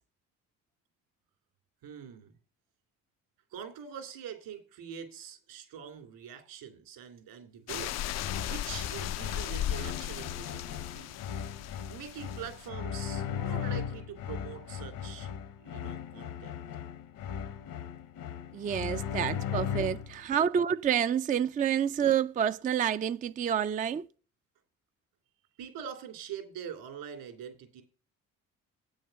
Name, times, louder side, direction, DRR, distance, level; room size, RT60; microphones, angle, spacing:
voice 1, 1.8-2.3 3.5-11.2 11.9-15.3 15.6-16.5 25.6-27.8, right 8 dB, 70° right, 3.0 m, -44 dB
sound 1, 7.7-12.7, left 12 dB, 45° left, 0.4 m, -36 dB
sound 2, 8.2-20.2, left 8 dB, 65° left, 1.0 m, -37 dB
voice 2, 18.5-24.0, right 8 dB, 25° right, 0.4 m, -28 dB
8.6 x 6.4 x 6.7 m
hypercardioid pair, 60°, 37 cm